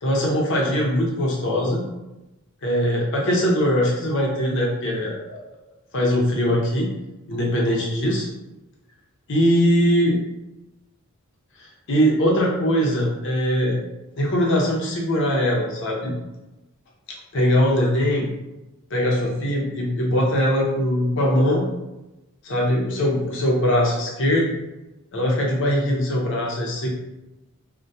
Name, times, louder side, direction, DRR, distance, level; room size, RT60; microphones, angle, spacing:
voice 1, 0.0-1.8 2.6-5.4 5.9-6.9 7.3-8.3 9.3-10.2 11.6-13.8 14.2-16.1 17.3-18.3 18.9-21.7 22.4-24.5 25.1-26.9, equal, 55° left, -3 dB, 0.6 m, -21 dB
2.6 x 2.1 x 2.2 m, 1.0 s
head